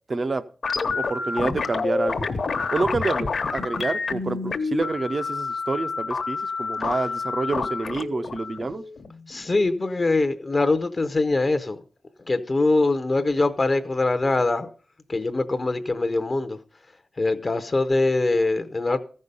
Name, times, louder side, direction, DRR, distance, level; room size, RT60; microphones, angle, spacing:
voice 1, 0.1-0.4 0.9-2.3 2.7-8.8, right 3 dB, 30° right, 0.5 m, -28 dB
sound 1, 0.6-9.5, left 4 dB, 55° left, 1.0 m, -28 dB
voice 2, 9.3-11.8 12.3-14.7 15.1-16.6 17.2-19.0, left 2 dB, 30° left, 0.6 m, -23 dB
14.5 x 5.5 x 6.6 m
wide cardioid pair, 175°, 0 cm